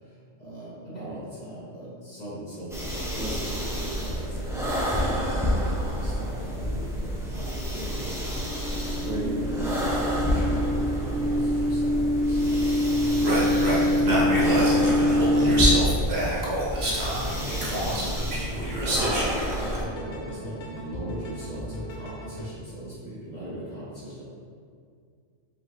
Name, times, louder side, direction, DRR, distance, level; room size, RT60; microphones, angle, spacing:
voice 1, 0.0-5.1 5.8-8.2 8.9-12.6 17.6-17.8 19.9-24.2, right 1 dB, 35° left, -9 dB, 1.5 m, -38 dB
sound 1, 2.7-19.8, equal, 5° right, 0.4 m, -29 dB
sound 2, 8.3-15.7, left 1 dB, 75° right, 1.4 m, -25 dB
voice 2, 13.2-19.8, right 1 dB, 60° right, -6 dB, 1.2 m, -27 dB
sound 3, 16.8-22.5, equal, 85° left, 1.1 m, -39 dB
5.1 x 3.3 x 3.0 m, 2.1 s
omnidirectional pair, 1.2 m